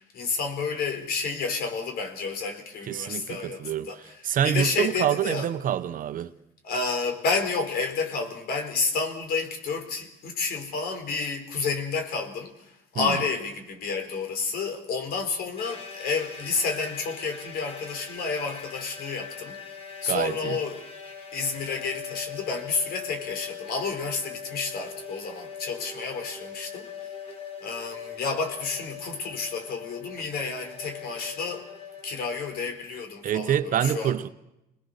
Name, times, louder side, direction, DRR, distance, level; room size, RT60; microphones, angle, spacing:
voice 1, 0.1-4.2 4.4-5.5 6.6-19.6 20.0-20.8 21.3-27.1 27.6-31.7 32.0-34.1, left 4 dB, 65° left, 4.3 m, -30 dB
voice 2, 2.9-6.3 12.9-13.2 20.1-20.6 33.2-34.3, right 10 dB, 55° right, 1.0 m, -27 dB
sound 1, 15.6-32.7, left 6 dB, 35° left, 4.5 m, -42 dB
27.0 x 20.0 x 6.6 m
cardioid pair, 110°, 17 cm